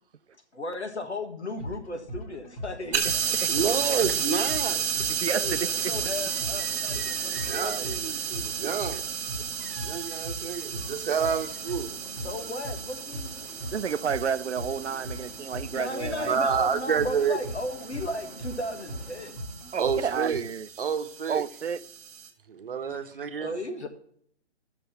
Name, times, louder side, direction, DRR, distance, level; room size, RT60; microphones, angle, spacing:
voice 1, 0.3-3.0 3.7-3.8 4.3-4.5 5.3-8.0 10.2-10.4 11.3-11.4 12.2-13.4 15.7-19.4 22.9-23.9, left 2 dB, 75° left, 1.8 m, -36 dB
sound 1, 1.5-20.4, equal, 30° left, 1.9 m, -40 dB
sound 2, 2.9-22.3, right 7 dB, 15° right, 1.1 m, -33 dB
voice 2, 3.5-4.8 6.6-12.0 16.3-17.4 19.8-20.4 20.8-21.4 22.5-23.5, right 6 dB, 55° right, 1.1 m, -29 dB
sound 3, 4.5-19.3, left 2 dB, 60° left, 2.5 m, -50 dB
voice 3, 13.7-16.4 19.7-20.7 21.3-21.8, right 6 dB, 80° right, 0.6 m, -30 dB
12.0 x 6.9 x 4.3 m
figure-of-eight pair, 135°, 34 cm